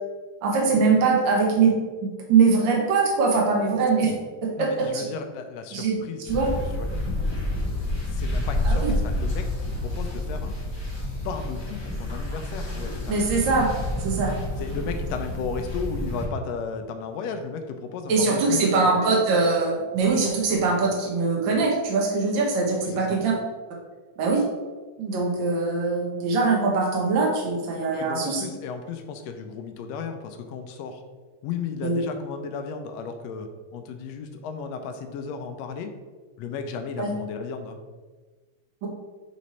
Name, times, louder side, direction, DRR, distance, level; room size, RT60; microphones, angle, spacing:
voice 1, 0.4-1.7 2.3-4.1 4.4-5.0 5.7-6.0 6.3-6.5 8.6-8.9 13.1-13.7 14.0-14.3 18.1-23.3 24.2-24.4 25.0-28.5 31.8-32.0 37.0-37.1 38.8-38.9, right 4 dB, 75° right, -1 dB, 1.0 m, -22 dB
voice 2, 4.6-7.2 8.1-10.6 11.2-13.2 14.6-19.1 22.8-23.2 28.0-31.0 31.4-35.9 36.4-37.8, left 5 dB, 80° left, 6 dB, 1.6 m, -34 dB
sound 1, 6.3-16.2, left 1 dB, 45° left, 0.3 m, -29 dB
7.6 x 3.2 x 4.1 m, 1.4 s
omnidirectional pair, 3.4 m